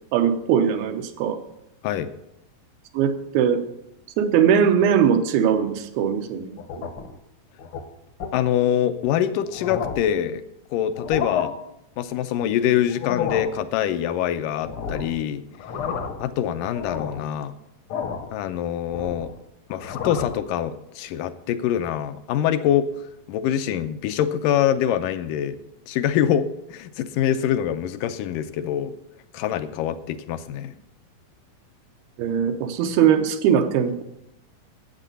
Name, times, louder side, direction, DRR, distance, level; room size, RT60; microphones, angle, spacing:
voice 1, 0.1-1.4 2.9-3.6 4.2-6.5 32.2-34.0, right 8 dB, 90° right, 6 dB, 2.9 m, -20 dB
sound 1, 6.6-7.2 7.6-7.8 8.2-8.4 9.0-9.1 9.5-10.2 10.9-11.5 12.9-13.6 14.6-15.2 15.5-16.3 16.7-17.3 17.9-18.3 18.7-19.4 19.7-20.4, left 6 dB, 65° left, 1.3 m, -31 dB
voice 2, 8.3-10.4 10.7-11.5 12.0-15.4 16.2-17.5 18.3-19.3 19.7-22.9 23.3-25.6 25.9-28.9 29.3-30.8, left 10 dB, 80° left, 11 dB, 2.0 m, -24 dB
12.5 x 8.3 x 6.8 m, 0.82 s
omnidirectional pair, 4.2 m